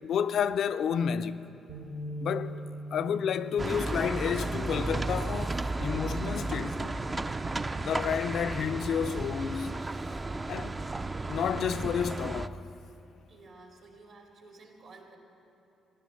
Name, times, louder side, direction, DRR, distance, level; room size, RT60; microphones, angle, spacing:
voice 1, 0.0-1.4 2.2-2.6 2.9-7.0 7.8-9.8 10.5-10.8 11.3-12.6, left 8 dB, 65° left, 0.4 m, -30 dB
sound 1, 1.7-7.9, equal, 85° right, 3.0 m, -44 dB
sound 2, 3.6-12.5, right 2 dB, 25° right, 0.4 m, -33 dB
voice 2, 13.3-15.2, right 3 dB, 65° right, 2.5 m, -52 dB
14.5 x 11.0 x 6.9 m
cardioid pair, 90°, 0 cm